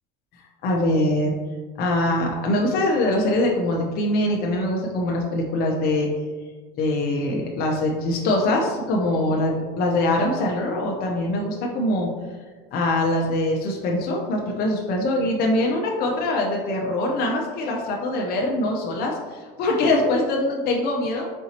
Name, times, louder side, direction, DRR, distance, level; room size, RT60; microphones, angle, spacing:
voice 1, 0.6-1.3 1.8-6.1 6.8-12.1 12.7-21.3, left 1 dB, 50° left, -1 dB, 0.7 m, -23 dB
4.5 x 4.0 x 2.9 m, 1.4 s
supercardioid pair, 115°, 20 cm